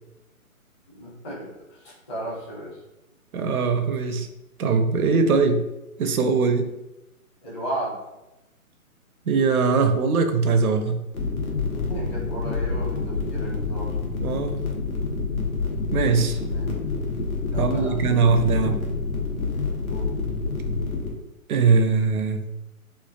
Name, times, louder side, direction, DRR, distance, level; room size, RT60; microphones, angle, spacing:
voice 1, 0.9-2.8 7.4-8.0 11.7-14.1 16.4-16.8 17.5-18.1 19.8-20.2, right 1 dB, 20° left, -7 dB, 0.7 m, -35 dB
voice 2, 3.3-4.3 4.6-5.7 6.0-6.7 9.3-11.0 14.2-14.6 15.9-16.4 17.6-18.8 21.5-22.5, right 4 dB, 80° right, 7 dB, 0.6 m, -21 dB
sound 1, 11.1-21.1, left 4 dB, 70° left, 0.9 m, -27 dB
3.2 x 2.4 x 2.3 m, 0.95 s
hypercardioid pair, 150°, 43 cm